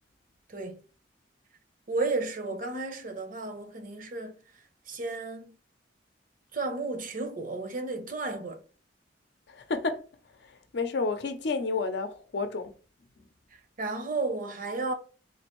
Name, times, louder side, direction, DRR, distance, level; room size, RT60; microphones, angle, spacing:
voice 1, 0.5-0.8 1.9-4.4 4.9-5.6 6.5-8.6 13.8-14.9, right 3 dB, 50° right, 0.7 m, -33 dB
voice 2, 9.5-10.0 10.4-12.7, left 4 dB, 65° left, 0.6 m, -31 dB
3.8 x 2.5 x 3.0 m
head